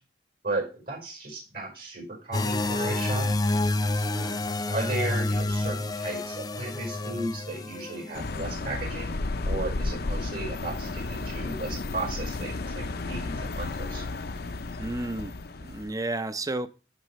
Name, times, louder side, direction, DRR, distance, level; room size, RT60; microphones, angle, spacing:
voice 1, 0.4-3.3 4.7-14.0, right 2 dB, 60° right, 5.1 m, -35 dB
sound 1, 2.3-8.2, left 2 dB, 20° left, 0.6 m, -28 dB
voice 2, 4.1-4.5 14.8-15.3 15.6-16.7, right 2 dB, 20° right, 0.7 m, -32 dB
sound 2, 8.1-15.9, left 2 dB, 60° left, 0.7 m, -33 dB
15.0 x 5.1 x 3.1 m
head